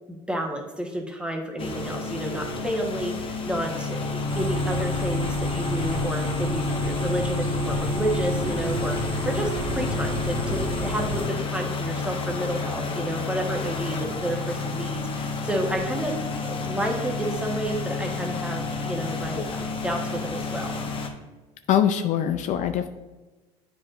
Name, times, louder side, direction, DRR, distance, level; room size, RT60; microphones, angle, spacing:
voice 1, 0.1-16.1 16.4-20.8, right 1 dB, 5° right, 1 dB, 1.1 m, -30 dB
sound 1, 1.6-21.1, left 4 dB, 35° left, 0.9 m, -30 dB
sound 2, 4.3-11.3, right 1 dB, 65° right, 1.6 m, -31 dB
voice 2, 21.7-22.9, left 10 dB, 55° left, 8 dB, 0.4 m, -23 dB
8.4 x 4.6 x 2.5 m, 1.2 s
supercardioid pair, 95°, 15 cm